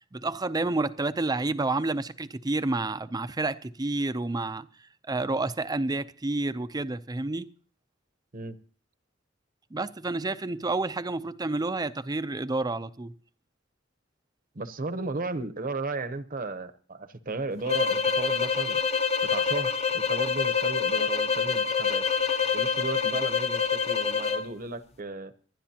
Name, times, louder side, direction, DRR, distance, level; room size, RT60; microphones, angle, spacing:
voice 1, 0.1-4.7 5.1-7.5 9.7-13.1, right 2 dB, 20° right, 0.5 m, -29 dB
voice 2, 14.5-22.0 22.5-25.3, right 3 dB, 45° right, 0.9 m, -35 dB
sound 1, 17.7-24.5, left 6 dB, 35° left, 0.8 m, -26 dB
26.0 x 11.5 x 2.9 m
head